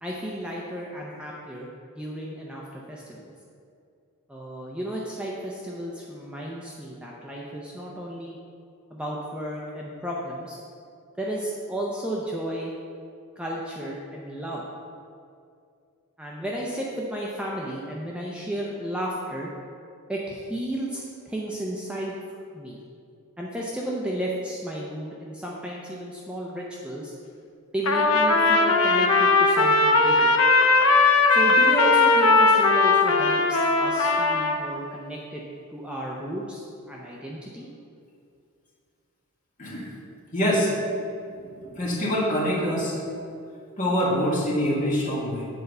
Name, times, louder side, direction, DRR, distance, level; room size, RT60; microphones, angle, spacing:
voice 1, 0.0-3.3 4.3-8.4 8.9-10.6 11.2-12.7 13.4-14.6 16.2-19.5 20.1-22.1 22.5-22.8 23.4-27.1 27.7-30.3 31.3-35.4 35.7-37.7, right 1 dB, 5° right, -4 dB, 0.6 m, -33 dB
Trumpet, 27.9-34.6, left 3 dB, 75° left, 0.7 m, -19 dB
voice 2, 40.3-40.7 41.6-42.9 43.8-45.5, equal, 35° left, -5 dB, 1.9 m, -25 dB
8.1 x 4.5 x 6.6 m, 2.4 s
head